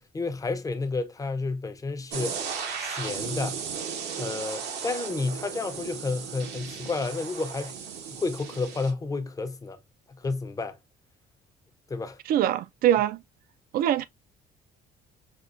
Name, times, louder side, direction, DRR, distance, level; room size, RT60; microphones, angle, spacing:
voice 1, 0.0-2.4 2.8-3.6 4.2-7.8 8.1-9.8 10.1-10.8 11.9-12.2, left 3 dB, 20° left, 0.6 m, -31 dB
sound 1, 2.1-8.9, right 6 dB, 85° right, 1.1 m, -35 dB
voice 2, 12.3-13.2 13.7-14.0, right 11 dB, 60° right, 0.4 m, -23 dB
5.1 x 2.3 x 2.4 m
cardioid pair, 110°, 17 cm